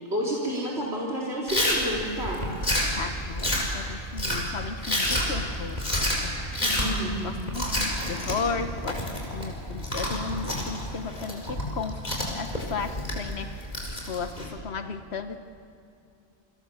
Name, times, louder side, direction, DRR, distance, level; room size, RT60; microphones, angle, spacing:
voice 1, 0.1-2.4 6.6-7.4, equal, 80° right, -3 dB, 3.9 m, -30 dB
Chewing mastication, 1.5-14.5, equal, 40° left, 5.2 m, -29 dB
voice 2, 3.0-5.8 6.2-6.3 7.2-9.0 9.3-12.0 12.3-13.7 14.1-15.4, left 5 dB, 80° left, 8 dB, 1.3 m, -34 dB
29.0 x 26.0 x 7.0 m, 2.5 s
omnidirectional pair, 1.1 m